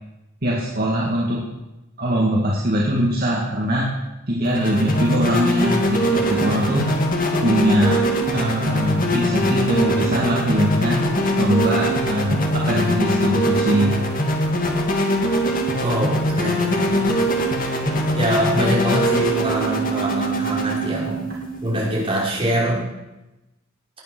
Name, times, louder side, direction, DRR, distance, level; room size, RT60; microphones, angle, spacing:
voice 1, 0.4-1.4 2.0-3.9 4.3-7.0 7.4-11.0 11.4-14.1, equal, 45° right, -4 dB, 2.4 m, -21 dB
sound 1, 4.4-22.2, equal, 40° left, 2.3 m, -22 dB
voice 2, 15.8-17.5 18.2-21.3 21.6-22.9, right 1 dB, 25° right, -5 dB, 5.6 m, -24 dB
19.0 x 9.6 x 6.3 m, 0.99 s
head